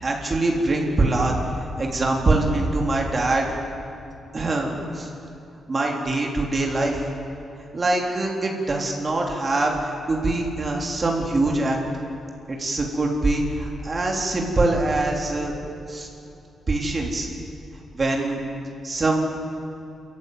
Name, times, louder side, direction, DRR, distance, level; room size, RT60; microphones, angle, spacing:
voice 1, 0.0-3.6 4.3-5.1 5.7-7.0 7.7-11.8 12.5-15.5 15.9-16.1 16.7-17.3 17.9-18.4 18.8-19.2, right 2 dB, 35° right, 0 dB, 3.5 m, -23 dB
26.0 x 15.0 x 9.7 m, 2.8 s
cardioid pair, 100°, 0 cm